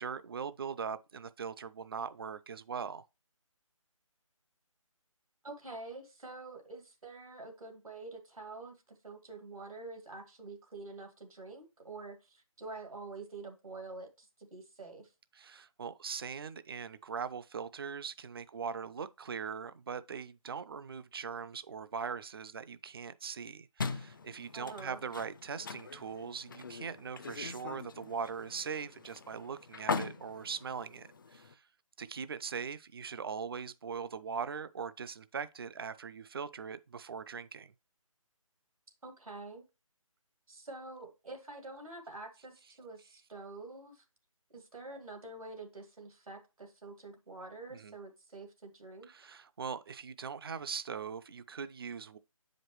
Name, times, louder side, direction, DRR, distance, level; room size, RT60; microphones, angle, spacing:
voice 1, 0.0-3.0 15.3-31.6 32.0-37.7 47.7-47.9 49.1-52.2, right 6 dB, 45° right, 0.4 m, -41 dB
voice 2, 5.4-8.7 9.0-15.1 24.5-25.0 39.0-39.6 40.5-44.0 44.5-49.1, right 3 dB, 90° right, 2.1 m, -47 dB
sound 1, 23.8-31.5, left 5 dB, 40° left, 0.4 m, -41 dB
7.5 x 5.0 x 3.0 m
figure-of-eight pair, 160°, 18 cm